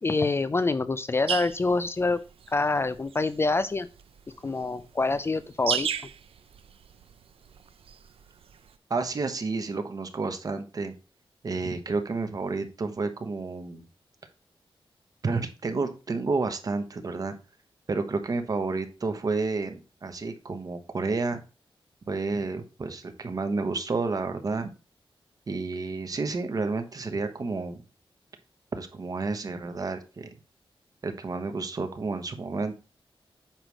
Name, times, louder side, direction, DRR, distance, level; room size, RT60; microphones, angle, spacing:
voice 1, 0.0-2.2 2.5-3.9 4.4-5.9, left 3 dB, 25° left, 13 dB, 0.4 m, -26 dB
sound 1, 1.3-8.7, right 8 dB, 85° right, 0.5 m, -36 dB
voice 2, 8.9-10.9 11.4-13.8 15.2-17.4 17.9-21.4 22.1-24.7 25.5-27.8 28.7-30.3 31.0-32.8, right 3 dB, 40° right, 7 dB, 1.1 m, -30 dB
8.8 x 3.1 x 6.4 m, 0.31 s
wide cardioid pair, 175°, 9 cm